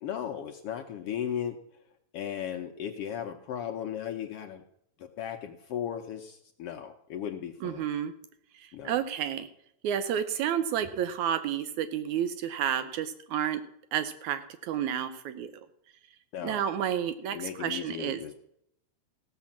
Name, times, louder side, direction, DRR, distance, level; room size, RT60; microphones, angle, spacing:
voice 1, 0.0-1.6 2.1-4.6 5.0-7.9 8.7-9.0 16.3-16.6 17.3-18.5, left 9 dB, 80° left, 5 dB, 1.3 m, -36 dB
voice 2, 7.6-8.1 8.6-9.5 9.8-13.6 13.9-15.5 16.4-18.2, right 9 dB, 75° right, 11 dB, 2.0 m, -30 dB
16.0 x 6.7 x 7.2 m, 0.75 s
omnidirectional pair, 3.5 m